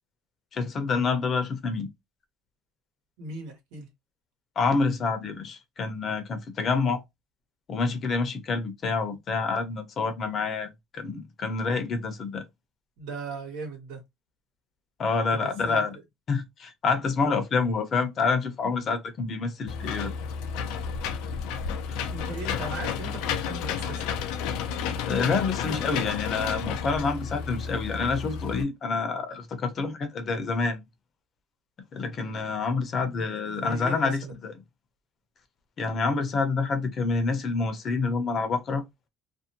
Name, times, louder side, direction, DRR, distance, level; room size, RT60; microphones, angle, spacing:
voice 1, 0.5-1.9 4.6-7.0 7.7-12.5 15.0-16.0 16.3-20.1 21.9-22.0 25.0-30.8 31.9-34.5 35.8-38.8, left 4 dB, 40° left, 0.6 m, -27 dB
voice 2, 3.2-3.9 13.0-14.0 15.3-16.0 22.0-24.0 33.0-34.3, right 3 dB, 85° right, 1.1 m, -38 dB
Engine / Mechanisms, 19.7-28.6, left 7 dB, 80° left, 0.4 m, -31 dB
2.5 x 2.1 x 2.8 m
cardioid pair, 135°, 0 cm